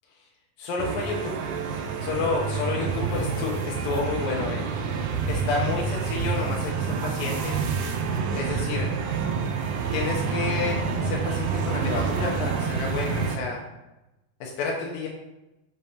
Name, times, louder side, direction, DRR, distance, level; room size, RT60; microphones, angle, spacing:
voice 1, 0.6-1.4 2.0-4.6 5.3-7.6 8.3-8.9 9.9-13.6 14.4-15.1, left 4 dB, 80° left, -2 dB, 2.5 m, -30 dB
sound 1, 0.8-13.4, right 5 dB, 80° right, 1.7 m, -28 dB
7.4 x 5.1 x 2.8 m, 0.96 s
omnidirectional pair, 4.2 m